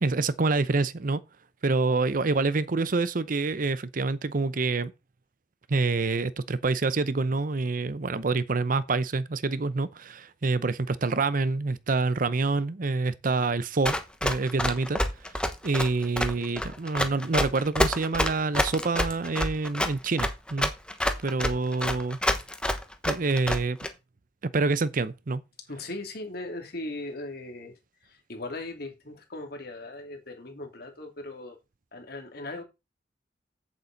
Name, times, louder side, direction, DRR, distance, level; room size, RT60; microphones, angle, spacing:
voice 1, 0.0-1.2 1.6-4.9 5.7-13.9 14.2-15.0 15.6-20.7 21.2-22.2 23.1-23.8 24.5-25.4, right 3 dB, 50° right, 0.7 m, -27 dB
Run, 13.8-23.9, left 1 dB, 5° left, 1.1 m, -27 dB
voice 2, 25.7-31.6 31.9-32.6, left 2 dB, 60° left, 2.6 m, -38 dB
8.4 x 7.6 x 4.0 m
head